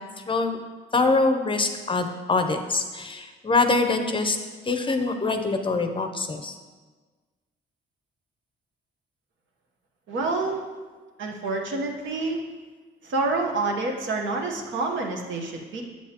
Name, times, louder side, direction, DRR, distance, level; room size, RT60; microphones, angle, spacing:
voice 1, 0.3-0.6 0.9-4.4 4.7-6.5, left 3 dB, 25° left, 6 dB, 0.6 m, -24 dB
voice 2, 10.1-10.6 11.2-12.4 13.0-15.8, right 3 dB, 75° right, 2 dB, 1.1 m, -27 dB
7.2 x 7.1 x 2.9 m, 1.4 s
cardioid pair, 90°, 20 cm